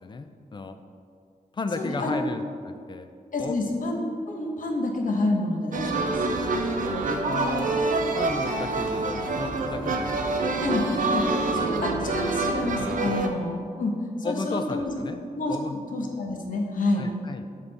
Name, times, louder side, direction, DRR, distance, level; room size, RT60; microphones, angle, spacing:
voice 1, 0.0-0.8 1.5-3.1 3.4-3.6 7.1-7.7 8.1-10.5 12.8-13.2 14.2-15.2 15.5-15.8 17.0-17.5, left 3 dB, 30° left, 8 dB, 0.4 m, -34 dB
voice 2, 1.8-2.2 3.3-6.1 10.6-11.3 11.5-15.0 15.3-15.6 15.9-17.1, left 2 dB, 65° left, 1 dB, 0.9 m, -28 dB
sound 1, 5.7-13.3, right 3 dB, 65° right, 0.6 m, -26 dB
6.2 x 5.5 x 4.0 m, 2.2 s
wide cardioid pair, 145°, 15 cm